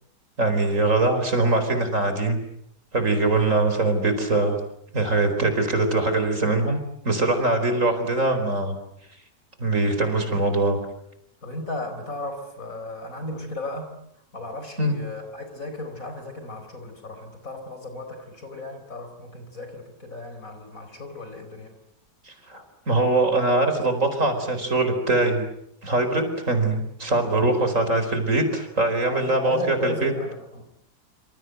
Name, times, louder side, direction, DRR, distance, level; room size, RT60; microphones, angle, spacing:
voice 1, 0.4-2.4 2.9-4.6 4.9-8.7 9.6-10.8 14.8-15.0 22.3-25.4 25.8-30.1, right 2 dB, 45° right, 7 dB, 4.9 m, -22 dB
voice 2, 11.4-13.9 14.3-21.7 29.1-30.7, left 2 dB, 50° left, 7 dB, 5.0 m, -35 dB
27.0 x 27.0 x 8.0 m, 0.75 s
omnidirectional pair, 1.8 m